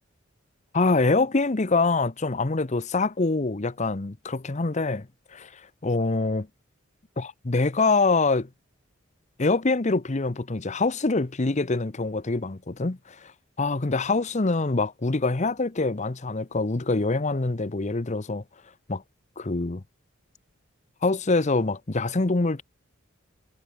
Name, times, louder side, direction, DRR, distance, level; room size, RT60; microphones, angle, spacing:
voice 1, 0.7-6.5 7.2-8.5 9.4-13.3 13.6-18.4 18.9-19.0 19.4-19.8 21.0-22.6, left 3 dB, 35° left, 0.8 m, -25 dB
head